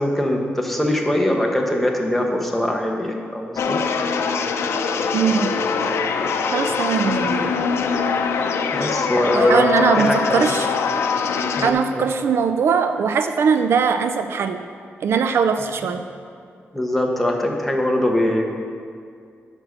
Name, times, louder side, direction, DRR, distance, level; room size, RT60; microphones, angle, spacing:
voice 1, 0.0-3.8 8.7-9.7 10.0-10.5 11.6-12.0 16.7-18.5, left 1 dB, 5° left, 1 dB, 1.1 m, -22 dB
sound 1, 3.6-11.7, left 5 dB, 80° left, 0.6 m, -23 dB
voice 2, 5.1-5.5 6.5-7.6 9.3-10.7 11.6-14.6 15.0-16.1, right 6 dB, 65° right, 8 dB, 0.4 m, -20 dB
8.8 x 6.1 x 6.4 m, 2.2 s
wide cardioid pair, 140°, 4 cm